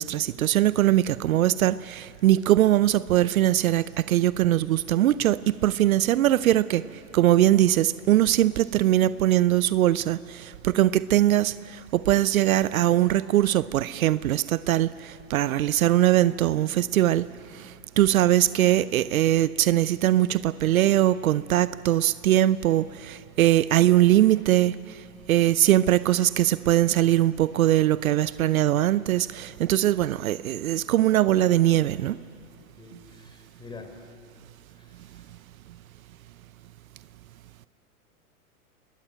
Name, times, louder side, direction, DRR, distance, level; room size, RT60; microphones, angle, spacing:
voice 1, 0.0-6.8 7.1-17.3 17.5-17.7 18.0-24.7 25.3-32.2, right 13 dB, 65° right, 18 dB, 0.7 m, -21 dB
voice 2, 32.8-34.1 34.7-35.3, left 3 dB, 10° left, 5 dB, 3.9 m, -46 dB
28.0 x 20.5 x 9.0 m, 2.5 s
hypercardioid pair, 110°, 44 cm